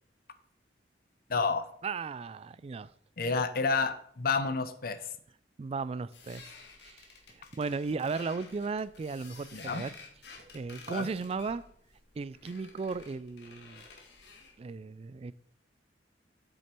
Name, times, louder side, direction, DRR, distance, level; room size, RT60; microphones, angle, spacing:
voice 1, 1.3-1.7 3.2-5.0 9.5-9.8 10.9-11.1, left 4 dB, 55° left, 11 dB, 0.7 m, -29 dB
voice 2, 1.8-2.9 3.2-3.4 5.6-6.5 6.8-9.9 10.5-11.6 12.2-13.8 14.6-15.3, right 4 dB, 35° right, 17 dB, 0.3 m, -36 dB
sound 1, 6.1-14.6, left 4 dB, 70° left, 1.7 m, -52 dB
8.2 x 6.6 x 4.4 m, 0.63 s
head